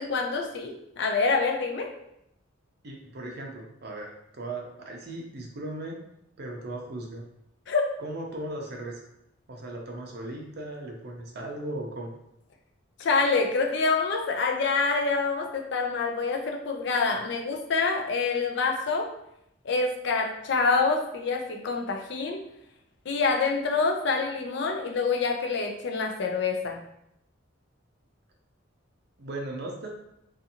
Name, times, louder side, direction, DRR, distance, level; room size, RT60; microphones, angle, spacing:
voice 1, 0.0-1.9 7.7-7.8 13.0-19.1 19.6-22.4 23.1-26.8, left 4 dB, 60° left, 2 dB, 0.4 m, -26 dB
voice 2, 2.8-6.0 6.4-7.2 8.0-9.0 9.5-12.1 29.2-29.9, right 1 dB, 55° right, 0 dB, 0.5 m, -37 dB
2.6 x 2.4 x 2.7 m, 0.79 s
head